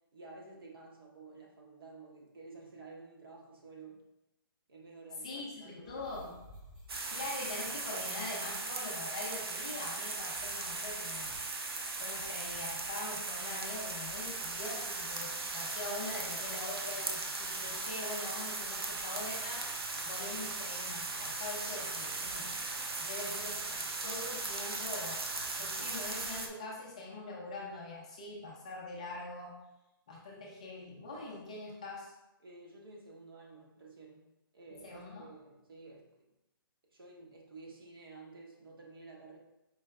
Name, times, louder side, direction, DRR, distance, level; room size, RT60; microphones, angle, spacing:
voice 1, 0.1-4.0 4.7-6.3 32.4-34.3 34.5-36.3 36.9-39.4, right 3 dB, 70° right, -1 dB, 1.3 m, -52 dB
voice 2, 5.2-6.3 7.1-11.4 12.0-22.6 23.0-23.8 24.0-25.3 25.6-29.6 30.1-32.1 34.7-35.3, left 2 dB, 15° left, -3 dB, 0.4 m, -43 dB
sound 1, 5.8-8.0 8.3-8.4 8.6-10.7 11.2-11.6 11.9-12.0 12.4-12.9 13.8-14.5, left 1 dB, ahead, 0.9 m, -57 dB
sound 2, 6.9-26.5, right 3 dB, 85° right, 0.7 m, -38 dB
4.6 x 3.3 x 3.3 m, 0.94 s
hypercardioid pair, 175°, 12 cm